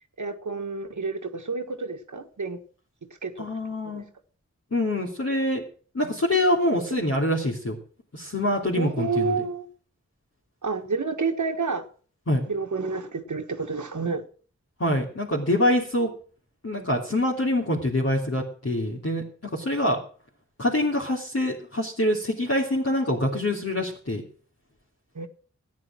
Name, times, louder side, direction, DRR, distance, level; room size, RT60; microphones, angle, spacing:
voice 1, 0.2-2.6 3.2-3.5 3.8-4.0 6.9-7.0 8.8-9.7 10.6-11.9 12.5-14.2 25.1-25.3, right 4 dB, 85° right, 4 dB, 1.5 m, -29 dB
voice 2, 3.4-4.0 4.7-5.6 5.9-7.8 8.1-9.4 12.3-12.4 14.8-16.1 16.6-20.0 20.6-24.2, left 1 dB, 55° left, -3 dB, 3.0 m, -25 dB
14.0 x 9.7 x 6.1 m, 0.42 s
wide cardioid pair, 60°, 29 cm